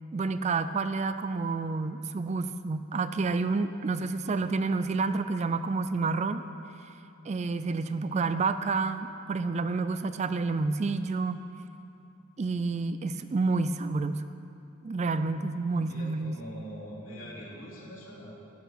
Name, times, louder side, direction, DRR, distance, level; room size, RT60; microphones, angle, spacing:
voice 1, 0.1-6.4 7.2-11.4 12.4-14.2 14.8-16.4, right 3 dB, 30° right, 11 dB, 0.3 m, -29 dB
voice 2, 15.7-18.3, equal, 65° left, -5 dB, 3.3 m, -44 dB
14.0 x 10.5 x 5.6 m, 2.7 s
head